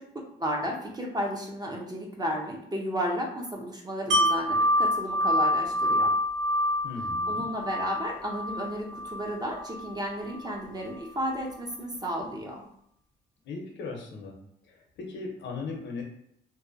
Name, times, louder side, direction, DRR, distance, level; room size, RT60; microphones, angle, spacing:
voice 1, 0.4-6.1 7.3-12.6, equal, 20° right, 0 dB, 0.6 m, -33 dB
Wind chime, 4.1-9.9 10.3-10.4, equal, 75° right, 0.8 m, -27 dB
voice 2, 6.8-7.4 13.4-14.3 14.6-16.0, left 4 dB, 70° left, 1 dB, 0.7 m, -38 dB
2.6 x 2.1 x 2.5 m, 0.71 s
cardioid pair, 90°, 20 cm